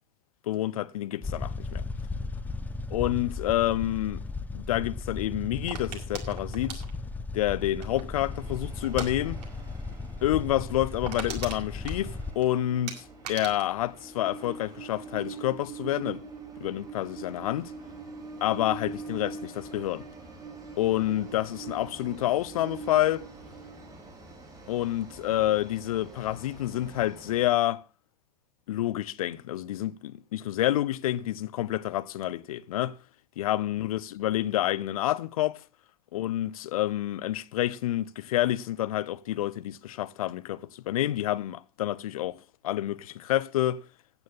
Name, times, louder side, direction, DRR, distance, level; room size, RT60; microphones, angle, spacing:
voice 1, 0.5-1.8 2.9-4.2 4.5-6.8 7.3-9.4 10.2-16.2 16.6-17.7 18.4-20.0 20.8-23.3 24.7-27.8 28.7-32.9 33.4-35.6 36.1-43.8, left 14 dB, 55° left, 0.9 m, -28 dB
sound 1, 1.2-12.3, left 3 dB, 10° left, 1.3 m, -36 dB
sound 2, 5.7-8.2 8.8-9.1 9.4-9.7 9.9-10.0 10.4-10.5 10.8-12.5 12.9-14.9 15.2-15.6, right 7 dB, 50° right, 5.3 m, -40 dB
Train, 8.1-27.6, right 4 dB, 15° right, 4.6 m, -44 dB
15.5 x 9.1 x 5.5 m
figure-of-eight pair, 90°, 21 cm